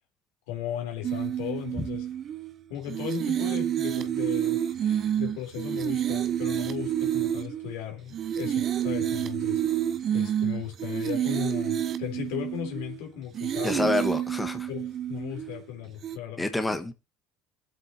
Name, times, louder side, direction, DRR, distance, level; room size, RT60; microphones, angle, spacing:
voice 1, 0.5-2.1 2.7-9.6 10.1-13.9 14.7-16.5, left 11 dB, 85° left, 3.5 m, -36 dB
sound 1, 1.0-2.5 2.9-7.8 8.1-13.0 13.3-15.6 16.0-16.2, right 10 dB, 45° right, 0.9 m, -29 dB
voice 2, 13.6-14.7 16.4-16.9, left 2 dB, 10° left, 1.4 m, -27 dB
21.0 x 8.1 x 2.8 m
supercardioid pair, 110°, 0 cm